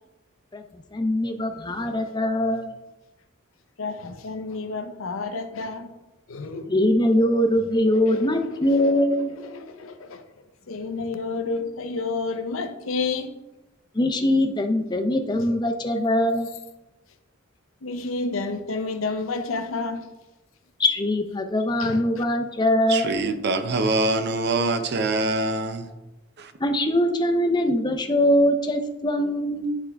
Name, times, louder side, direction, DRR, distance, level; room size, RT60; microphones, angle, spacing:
voice 1, 0.9-2.7 6.7-9.3 13.9-16.5 20.8-23.1 26.6-29.8, left 1 dB, 20° left, 0.6 m, -22 dB
voice 2, 3.8-5.9 6.3-6.7 8.0-8.4 8.7-9.1 9.4-10.2 10.7-13.3 17.8-20.1 21.8-22.2, left 3 dB, 90° left, 0.7 m, -30 dB
voice 3, 22.9-25.9 26.4-26.5, right 2 dB, 55° right, 0.6 m, -24 dB
10.0 x 3.5 x 3.5 m
head